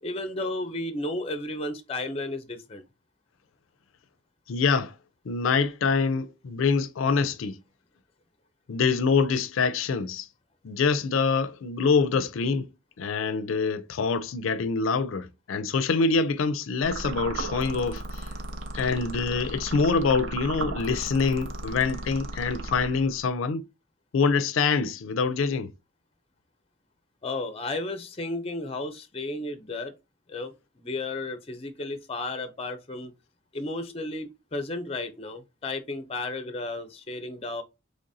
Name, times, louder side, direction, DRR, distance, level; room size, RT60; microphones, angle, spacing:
voice 1, 0.0-2.8 27.2-29.9 30.3-33.1 33.5-37.6, left 2 dB, 30° left, 0.5 m, -33 dB
voice 2, 4.5-4.9 5.3-7.6 8.7-10.3 10.6-12.7 13.0-18.3 18.7-23.6 24.1-25.7, left 4 dB, 80° left, 0.4 m, -25 dB
sound 1, 16.8-23.3, right 2 dB, 75° right, 0.6 m, -35 dB
3.8 x 3.3 x 2.7 m
head